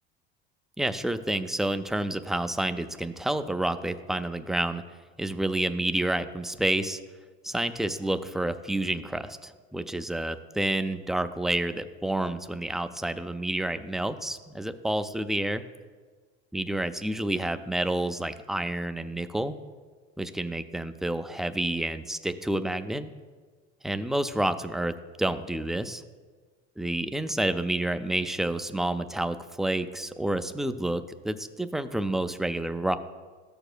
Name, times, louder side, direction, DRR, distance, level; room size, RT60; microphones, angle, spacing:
voice 1, 0.8-4.8 5.2-7.0 7.4-15.6 16.5-19.6 20.2-23.1 23.8-26.0 26.8-33.0, right 1 dB, ahead, 9 dB, 0.3 m, -29 dB
13.0 x 6.9 x 2.2 m, 1.5 s
hypercardioid pair, 75°, 34 cm